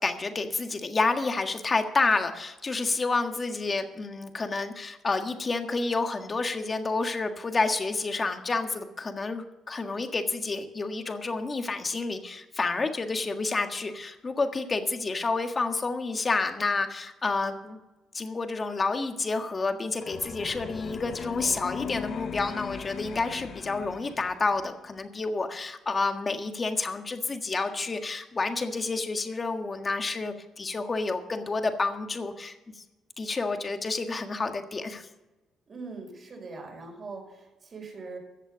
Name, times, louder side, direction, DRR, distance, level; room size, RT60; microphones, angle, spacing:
voice 1, 0.0-17.8 18.1-32.6 33.2-35.1, left 3 dB, 30° left, 6 dB, 1.6 m, -29 dB
sound 1, 20.0-24.7, left 7 dB, 60° left, 0.7 m, -38 dB
voice 2, 35.7-38.2, right 3 dB, 45° right, 1 dB, 5.2 m, -41 dB
14.5 x 7.9 x 6.4 m, 1.1 s
cardioid pair, 90°, 0 cm